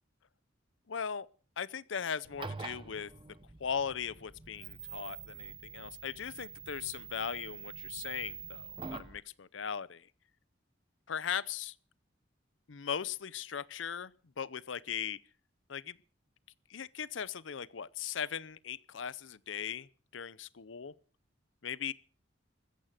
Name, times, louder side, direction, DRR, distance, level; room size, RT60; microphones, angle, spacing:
voice 1, 0.9-1.3 1.6-3.1 3.6-10.1 11.1-11.7 12.7-14.1 14.4-15.2 15.7-16.0 16.7-20.9 21.6-21.9, left 7 dB, 75° left, 0.7 m, -38 dB
sound 1, 2.2-9.2, right 5 dB, 25° right, 0.9 m, -46 dB
15.0 x 14.0 x 6.5 m
head